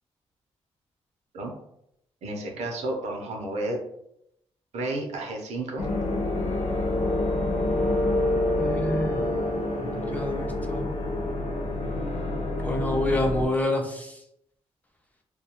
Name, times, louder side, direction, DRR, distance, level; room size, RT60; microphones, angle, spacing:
voice 1, 2.2-3.8 4.7-5.9, right 2 dB, 75° right, 2 dB, 0.6 m, -31 dB
sound 1, 5.8-13.4, left 2 dB, 80° left, 0.5 m, -27 dB
voice 2, 8.5-9.2 9.8-10.9 12.6-14.2, left 1 dB, 15° left, 1 dB, 0.4 m, -28 dB
2.2 x 2.2 x 2.8 m, 0.77 s
cardioid pair, 105°, 11 cm